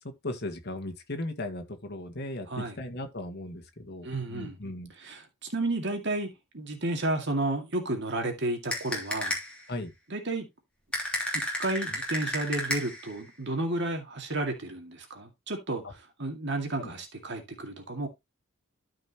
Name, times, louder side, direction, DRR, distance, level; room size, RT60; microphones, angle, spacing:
voice 1, 0.2-4.9 9.7-9.9 15.8-15.9 16.8-16.9, left 1 dB, 50° left, 1.7 m, -37 dB
voice 2, 4.0-4.6 5.0-9.4 10.1-10.5 11.6-18.1, right 2 dB, 55° right, 2.2 m, -32 dB
sound 1, 8.7-9.6 10.9-13.1, left 1 dB, 5° left, 3.0 m, -32 dB
13.5 x 5.2 x 2.9 m
head